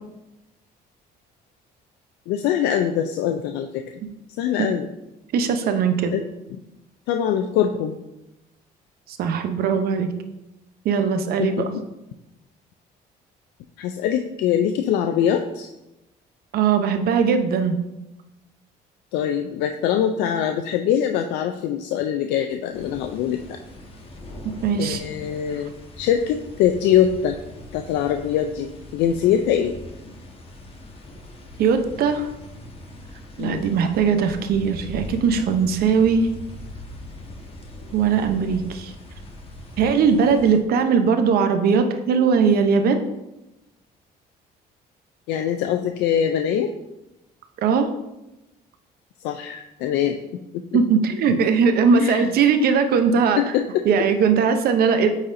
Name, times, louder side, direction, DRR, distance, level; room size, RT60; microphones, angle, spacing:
voice 1, 2.3-3.8 4.4-4.9 6.1-6.2 7.1-8.0 11.4-11.8 13.8-15.7 19.1-23.4 24.8-27.3 27.7-29.8 33.4-33.7 45.3-46.7 49.2-50.2 50.5-50.8 51.9-52.3 53.4-53.8, left 9 dB, 85° left, 5 dB, 0.4 m, -23 dB
voice 2, 5.3-6.1 9.1-10.1 10.8-11.6 16.5-17.8 24.6-25.0 31.6-32.3 33.4-36.3 37.9-38.9 39.8-43.0 47.6-47.9 50.7-53.4 53.8-55.1, right 6 dB, 65° right, 7 dB, 0.7 m, -19 dB
sound 1, 22.7-40.6, left 1 dB, 35° left, 1.2 m, -40 dB
8.7 x 4.2 x 2.6 m, 0.94 s
cardioid pair, 110°, 17 cm